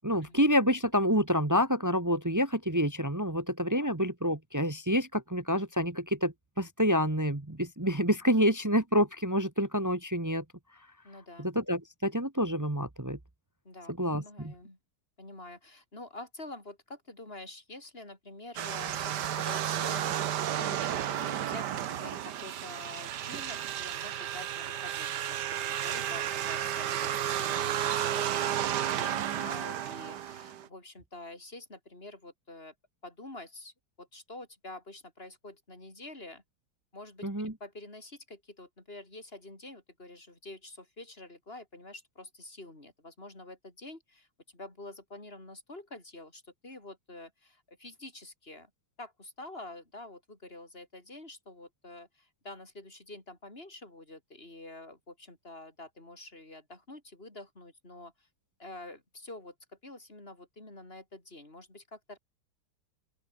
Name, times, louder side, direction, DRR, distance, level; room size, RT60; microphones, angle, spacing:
voice 1, 0.0-10.4 11.4-13.2 14.0-14.5 37.2-37.5, equal, 15° right, 0.6 m, -28 dB
voice 2, 11.0-11.5 13.6-14.8 15.2-28.5 28.9-32.7 33.0-36.4 36.9-48.7 49.0-58.3 58.6-59.5 59.8-62.2, left 2 dB, 25° left, 5.9 m, -47 dB
sound 1, 18.6-30.7, right 10 dB, 60° right, 1.4 m, -32 dB
open air
omnidirectional pair, 2.4 m